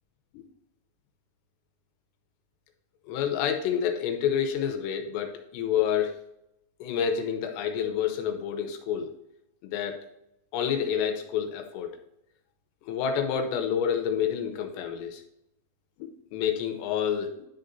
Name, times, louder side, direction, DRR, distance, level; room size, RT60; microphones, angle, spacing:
voice 1, 3.1-6.1 6.8-9.1 9.6-10.0 10.5-11.9 12.8-15.2 16.0-17.5, left 8 dB, 90° left, 4 dB, 2.9 m, -28 dB
10.5 x 3.9 x 4.1 m, 0.82 s
omnidirectional pair, 5.0 m